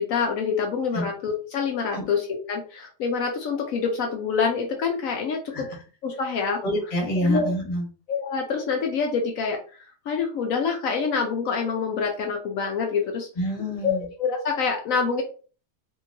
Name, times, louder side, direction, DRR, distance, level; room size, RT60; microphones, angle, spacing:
voice 1, 0.0-5.7 6.0-6.6 7.2-7.5 8.1-9.6 10.1-13.3 13.8-13.9 14.2-15.2, left 5 dB, 70° left, 2 dB, 0.9 m, -26 dB
voice 2, 6.6-7.8 13.4-14.0, equal, 25° left, -1 dB, 1.0 m, -26 dB
2.8 x 2.7 x 2.6 m, 0.39 s
omnidirectional pair, 1.7 m